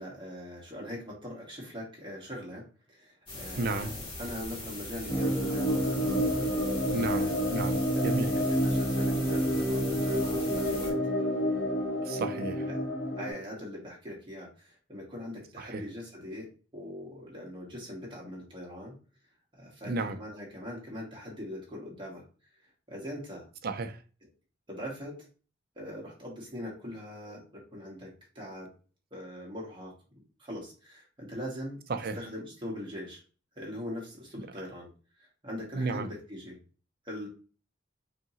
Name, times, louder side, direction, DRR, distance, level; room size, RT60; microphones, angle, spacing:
voice 1, 0.0-5.8 7.0-7.7 7.9-11.0 12.7-12.8 13.2-19.0 19.5-22.2 22.9-23.5 24.7-25.2 25.7-28.7 29.1-29.9 30.4-31.8 32.1-33.2 33.5-34.9 35.2-36.6 37.0-37.3, equal, 25° right, 1.5 m, -41 dB
sound 1, 3.3-10.9, left 2 dB, 30° left, 1.6 m, -41 dB
voice 2, 3.6-3.9 6.9-8.3 12.0-12.7 15.6-15.8 19.8-20.2 23.6-24.0 31.9-32.2 35.7-36.1, right 3 dB, 55° right, 0.5 m, -33 dB
sound 2, 5.1-13.3, equal, 5° left, 1.9 m, -28 dB
5.1 x 2.9 x 2.7 m
head